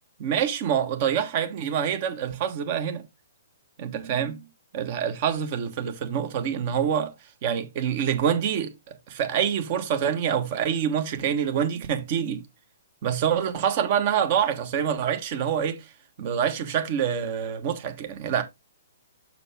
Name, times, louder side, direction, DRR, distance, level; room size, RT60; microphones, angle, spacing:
voice 1, 0.2-3.0 3.8-4.4 4.7-7.1 7.4-12.4 13.0-15.8 16.2-18.4, right 8 dB, 40° right, 1.4 m, -26 dB
6.8 x 5.9 x 3.5 m
figure-of-eight pair, 120°, 0 cm